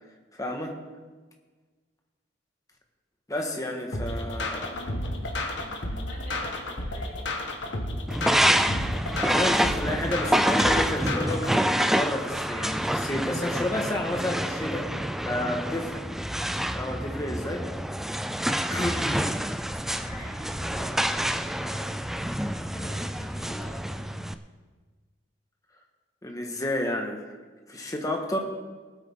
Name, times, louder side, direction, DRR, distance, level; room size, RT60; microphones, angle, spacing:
voice 1, 0.4-0.8 3.3-4.8 9.2-16.0 16.7-17.7 18.7-19.3 26.2-27.2 27.7-28.4, left 1 dB, 20° left, 2 dB, 1.6 m, -31 dB
sound 1, 3.9-11.5, left 1 dB, 80° left, 1.5 m, -32 dB
voice 2, 4.6-7.8 20.0-22.0 22.5-24.3, left 1 dB, 50° left, -6 dB, 4.1 m, -47 dB
sound 2, 8.1-24.3, equal, ahead, 0.4 m, -27 dB
19.0 x 8.7 x 3.7 m, 1.4 s
head